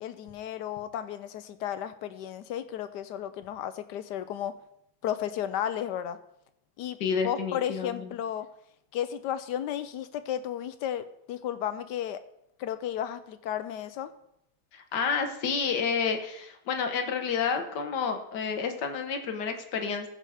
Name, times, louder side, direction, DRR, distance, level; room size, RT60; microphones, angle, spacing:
voice 1, 0.0-4.6 5.0-6.2 6.8-7.0 7.2-8.5 8.9-12.2 12.6-14.1, left 10 dB, 75° left, 12 dB, 1.0 m, -33 dB
voice 2, 7.0-8.1 14.7-20.1, left 6 dB, 60° left, 6 dB, 1.5 m, -30 dB
15.0 x 5.6 x 4.9 m, 0.78 s
omnidirectional pair, 2.3 m